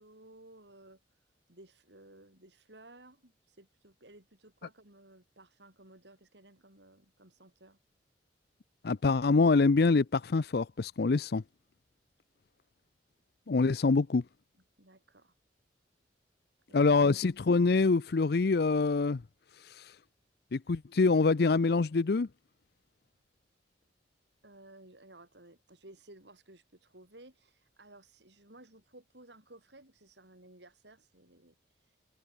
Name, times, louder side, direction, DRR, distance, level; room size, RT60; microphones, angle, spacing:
voice 1, 0.0-7.8 14.8-15.3 16.7-16.9 24.4-32.0, right 1 dB, 70° right, 7.2 m, -56 dB
voice 2, 8.8-11.4 13.5-14.2 16.7-19.2 19.6-20.0 20.5-22.3, left 3 dB, 60° left, 0.5 m, -25 dB
head